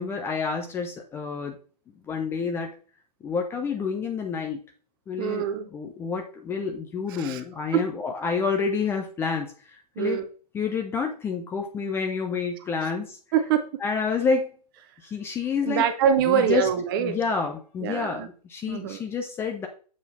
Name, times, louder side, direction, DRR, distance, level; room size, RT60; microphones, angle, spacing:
voice 1, 0.0-1.6 2.1-2.7 3.2-4.6 5.1-10.2 10.5-13.2 13.8-14.6 15.0-15.9 16.3-16.7 17.0-19.7, left 5 dB, 10° left, 3 dB, 0.6 m, -29 dB
voice 2, 5.2-5.7 7.1-7.4 7.7-7.8 10.0-10.3 12.8-12.9 13.3-13.7 15.6-17.2 17.8-18.3 18.7-19.0, right 8 dB, 30° right, 8 dB, 0.9 m, -24 dB
7.3 x 4.1 x 4.0 m, 0.40 s
figure-of-eight pair, 120°, 21 cm